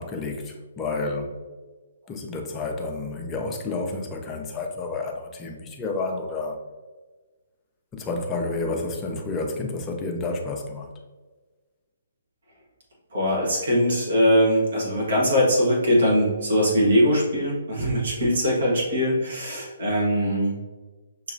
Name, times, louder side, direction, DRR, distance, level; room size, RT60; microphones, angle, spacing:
voice 1, 0.0-1.4 2.1-6.6 7.9-10.9, left 3 dB, 15° left, 2 dB, 0.6 m, -30 dB
voice 2, 13.1-20.6, equal, 55° right, -3 dB, 1.5 m, -21 dB
5.9 x 2.9 x 2.6 m, 1.3 s
figure-of-eight pair, 130°, 0 cm